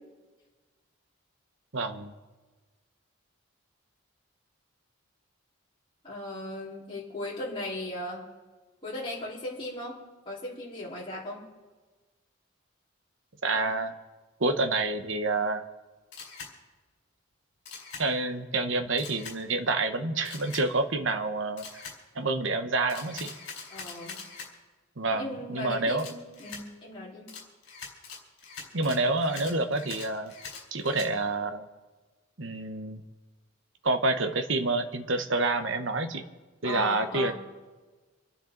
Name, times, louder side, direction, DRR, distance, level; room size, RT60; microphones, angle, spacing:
voice 1, 1.7-2.1 13.4-13.9 14.4-15.6 18.0-21.7 22.1-23.3 25.0-26.1 28.7-30.3 30.7-31.7 32.4-33.0 33.8-36.2 36.6-37.3, right 2 dB, 65° right, 8 dB, 1.1 m, -28 dB
voice 2, 6.0-8.3 8.8-10.0 10.3-11.4 23.7-24.2 25.1-27.3 36.6-37.3, left 1 dB, 25° left, -6 dB, 4.3 m, -37 dB
Camera, 16.1-16.5 17.7-18.0 19.0-19.4 20.2-20.6 21.6-22.0 22.9-24.5 26.0-26.6 27.3-31.1, left 5 dB, 55° left, 4.4 m, -43 dB
27.0 x 10.5 x 3.9 m, 1.3 s
head